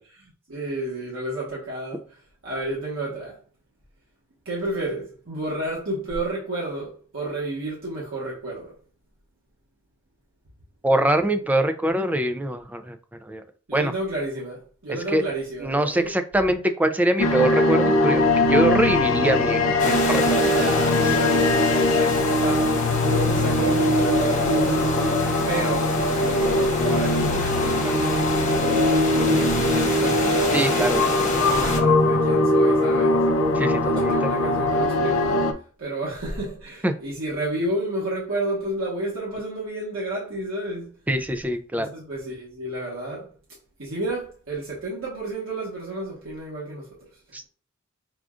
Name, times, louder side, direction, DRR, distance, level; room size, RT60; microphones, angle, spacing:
voice 1, 0.5-2.0 2.4-3.4 4.4-8.7 13.7-16.1 20.5-24.9 25.5-30.6 31.4-33.2 33.8-35.5 35.8-40.9 41.7-43.3 43.8-46.9, right 2 dB, 90° right, 1.3 m, -31 dB
voice 2, 10.8-13.0 13.3-13.4 13.7-13.9 15.1-15.2 15.6-20.6 30.5-31.0 33.5-34.1 36.8-36.9 41.1-41.9 47.3-47.5, right 1 dB, 10° right, 0.3 m, -23 dB
sound 1, 17.2-35.5, left 1 dB, 85° left, 0.5 m, -21 dB
sound 2, 19.8-31.8, left 2 dB, 35° left, 0.9 m, -29 dB
6.2 x 2.4 x 2.4 m
head